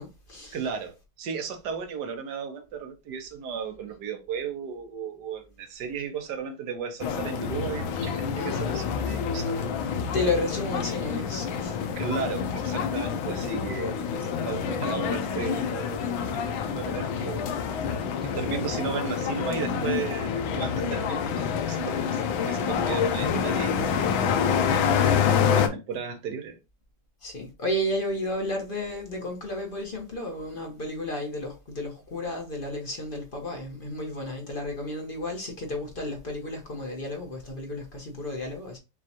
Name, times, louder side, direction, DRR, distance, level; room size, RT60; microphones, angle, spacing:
voice 1, 0.0-0.7 10.1-12.4 27.2-38.8, left 1 dB, 35° left, 0.9 m, -32 dB
voice 2, 0.5-9.7 10.7-11.2 12.0-17.5 18.2-24.5 25.4-26.6, right 6 dB, 65° right, 1.3 m, -35 dB
sound 1, 7.0-25.7, left 7 dB, 90° left, 1.5 m, -27 dB
6.2 x 2.4 x 2.8 m
omnidirectional pair, 2.1 m